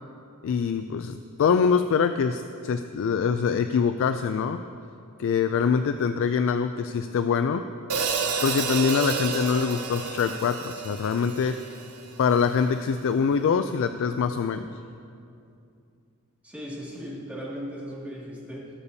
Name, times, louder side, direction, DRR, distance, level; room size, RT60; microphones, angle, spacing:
voice 1, 0.4-4.6 5.2-7.6 8.4-11.6 12.2-14.7, left 6 dB, 60° left, 9 dB, 0.3 m, -24 dB
Hi-hat, 7.9-12.2, right 5 dB, 90° right, 0.9 m, -30 dB
voice 2, 16.4-18.7, equal, 5° right, -7 dB, 2.2 m, -37 dB
19.5 x 6.7 x 2.7 m, 2.5 s
head